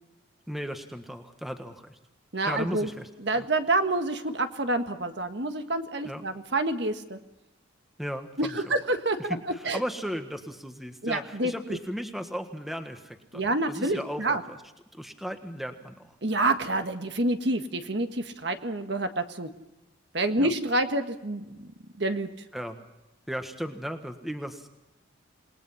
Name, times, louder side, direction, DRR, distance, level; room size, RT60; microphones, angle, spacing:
voice 1, 0.5-2.0 2.5-3.1 3.4-3.5 6.0-6.3 8.0-8.8 9.2-14.6 15.0-16.1 20.4-20.5 22.5-22.8 23.3-24.7, equal, ahead, 6 dB, 1.5 m, -36 dB
voice 2, 2.3-2.9 3.2-7.2 8.4-9.8 11.0-11.8 13.3-14.4 16.2-19.5 20.1-21.7 22.0-22.3, right 2 dB, 60° right, 7 dB, 1.6 m, -28 dB
28.0 x 20.5 x 5.7 m, 0.95 s
head